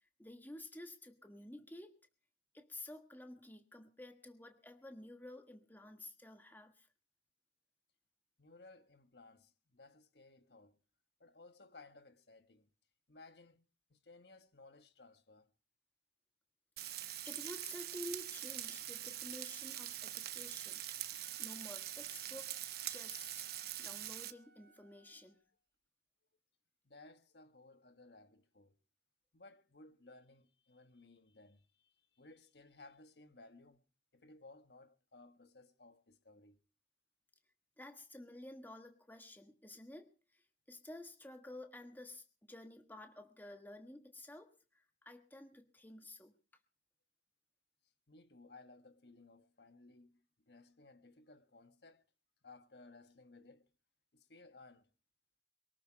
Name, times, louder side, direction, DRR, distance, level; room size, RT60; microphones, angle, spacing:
voice 1, 0.2-1.9 2.5-6.9 17.2-20.8 21.1-22.6 22.9-23.5 23.8-25.4 37.8-46.4, left 1 dB, 10° left, 1.4 m, -52 dB
voice 2, 8.4-10.8 11.2-12.7 13.1-15.5 26.8-28.8 29.3-33.8 34.1-36.6 48.1-52.0 52.4-53.7 54.1-54.9, left 3 dB, 65° left, 1.4 m, -60 dB
Frying (food), 16.8-24.3, right 12 dB, 60° right, 1.0 m, -44 dB
Wind instrument woodwind instrument, 21.2-25.5, right 2 dB, 80° right, 4.3 m, -67 dB
23.0 x 12.5 x 4.6 m
head